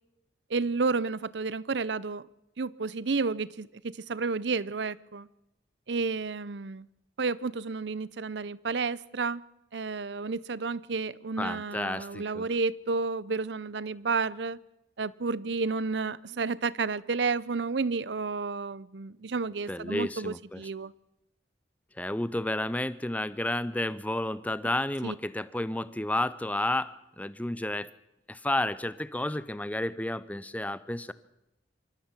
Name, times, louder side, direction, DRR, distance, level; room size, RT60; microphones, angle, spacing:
voice 1, 0.5-2.3 2.6-5.3 5.9-6.9 7.2-9.4 9.7-14.6 15.0-20.9 25.0-25.1, right 4 dB, 75° right, 0.7 m, -31 dB
voice 2, 11.4-12.5 19.7-20.6 22.0-27.9 28.3-31.1, left 1 dB, 10° left, 0.6 m, -31 dB
26.0 x 14.0 x 7.4 m
head